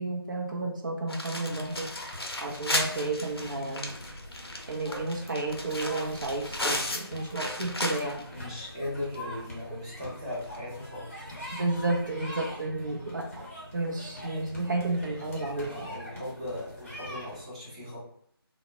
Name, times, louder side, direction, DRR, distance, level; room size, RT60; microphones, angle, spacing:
voice 1, 0.0-1.9 2.4-3.9 4.7-8.2 11.5-13.5 13.7-15.9, right 2 dB, 50° right, 0 dB, 0.5 m, -32 dB
sound 1, 1.1-8.3 8.7-8.8 9.1-9.2 10.4-10.6, left 1 dB, 75° left, 0.6 m, -35 dB
sound 2, 1.5-17.4, left 1 dB, 30° left, 0.6 m, -44 dB
voice 2, 8.3-11.3 15.6-18.0, left 1 dB, 15° right, -10 dB, 0.6 m, -38 dB
2.0 x 2.0 x 3.2 m, 0.67 s
figure-of-eight pair, 165°, 13 cm